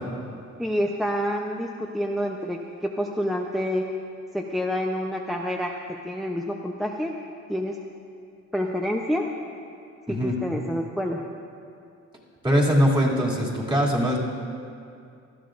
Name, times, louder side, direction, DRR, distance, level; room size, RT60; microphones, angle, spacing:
voice 1, 0.6-3.9 4.3-7.2 7.5-7.8 8.5-9.3 10.1-11.3, equal, ahead, 1 dB, 0.7 m, -28 dB
voice 2, 12.4-14.2, equal, 15° right, -3 dB, 2.6 m, -21 dB
19.0 x 12.5 x 2.6 m, 2.4 s
cardioid pair, 90°, 30 cm